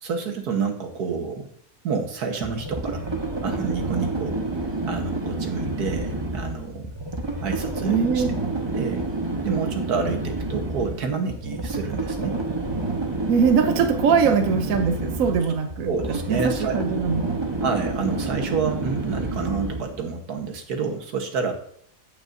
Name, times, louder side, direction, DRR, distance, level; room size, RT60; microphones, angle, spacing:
voice 1, 0.0-1.5 1.8-3.1 3.4-4.4 4.8-6.9 7.4-8.2 8.7-9.1 9.4-12.4 15.8-16.8 17.6-21.5, right 5 dB, 85° right, 1.8 m, -28 dB
sound 1, 2.4-20.0, right 2 dB, 20° right, 1.0 m, -29 dB
voice 2, 7.8-8.4 13.3-17.3, right 6 dB, 70° right, 1.1 m, -22 dB
15.5 x 5.3 x 2.7 m
omnidirectional pair, 1.6 m